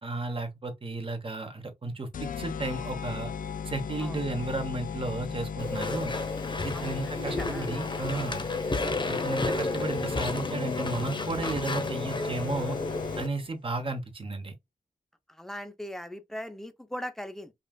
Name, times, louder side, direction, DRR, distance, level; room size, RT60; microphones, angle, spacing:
voice 1, 0.0-3.3 3.6-6.1 6.6-8.5 9.1-12.8 13.2-14.6, right 2 dB, 40° right, 1.0 m, -33 dB
sound 1, 2.1-13.5, left 6 dB, 80° left, 0.4 m, -37 dB
Walk footsteps / Chatter / Squeak, 5.6-13.3, left 2 dB, 35° left, 0.9 m, -32 dB
voice 2, 6.7-7.7 8.5-8.7 15.3-17.5, equal, 5° left, 0.6 m, -40 dB
5.3 x 2.4 x 2.3 m
wide cardioid pair, 115°, 14 cm